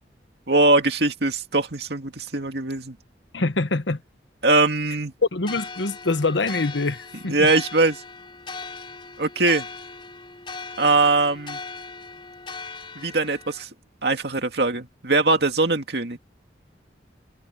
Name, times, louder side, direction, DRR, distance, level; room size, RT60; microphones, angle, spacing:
voice 1, 0.5-3.0 4.4-5.1 7.3-8.0 9.2-9.6 10.8-11.6 13.0-13.7 14.0-16.2, right 3 dB, 65° right, 2.3 m, -21 dB
voice 2, 3.3-4.0 5.3-7.5, left 3 dB, 85° left, 1.3 m, -25 dB
sound 1, 5.4-13.6, left 4 dB, 25° left, 4.2 m, -39 dB
head